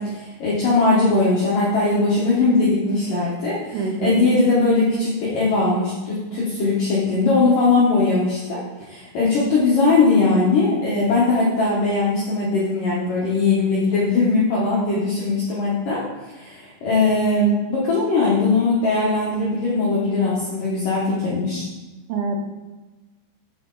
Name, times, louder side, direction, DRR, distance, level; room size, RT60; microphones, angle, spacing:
voice 1, 0.0-8.6 8.9-16.0 16.3-21.6, left 3 dB, 70° left, -7 dB, 2.0 m, -20 dB
voice 2, 3.7-4.2 22.1-22.4, right 4 dB, 80° right, 2 dB, 3.6 m, -25 dB
8.5 x 6.1 x 3.9 m, 1.2 s
omnidirectional pair, 5.9 m